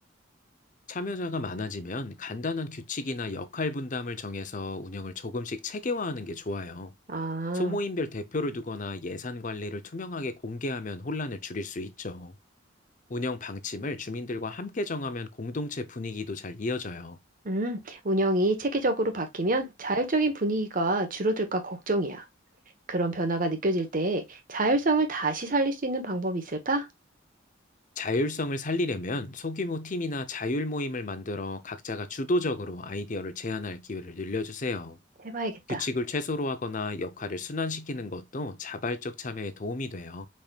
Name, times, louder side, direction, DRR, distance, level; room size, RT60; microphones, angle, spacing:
voice 1, 0.9-6.9 7.5-12.3 13.1-17.2 28.0-35.0 35.7-40.3, left 2 dB, 40° left, 0.7 m, -32 dB
voice 2, 7.1-7.8 17.4-22.2 22.9-26.9 35.2-35.8, right 2 dB, 45° right, 1.2 m, -27 dB
5.2 x 4.3 x 2.4 m
head